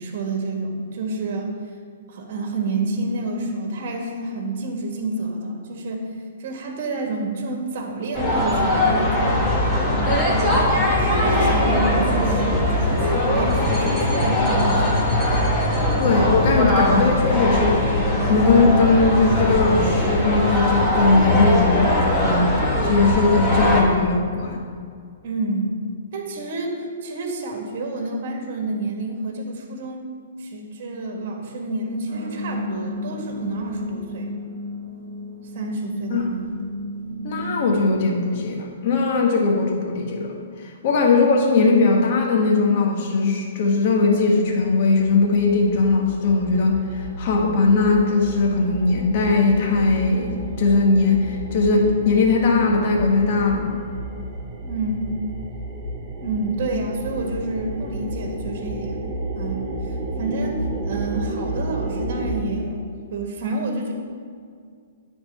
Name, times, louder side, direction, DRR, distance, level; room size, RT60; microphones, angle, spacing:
voice 1, 0.0-1.5 2.1-15.0 25.2-25.8 26.1-30.1 30.4-34.3 35.5-36.4 41.1-41.2 54.6-55.2 56.2-59.0 59.3-63.9, right 2 dB, 55° right, 2 dB, 1.8 m, -29 dB
sound 1, 8.1-23.8, left 1 dB, 10° left, 2.3 m, -20 dB
voice 2, 16.0-24.6 36.1-36.3 37.2-40.3 40.6-53.8, left 3 dB, 50° left, 1 dB, 1.6 m, -19 dB
sound 2, 32.1-38.0, left 1 dB, 70° right, 1.3 m, -33 dB
sound 3, 43.8-43.9 44.1-62.4, right 2 dB, 20° right, 2.4 m, -32 dB
9.8 x 4.3 x 5.6 m, 2.2 s
hypercardioid pair, 125°, 0 cm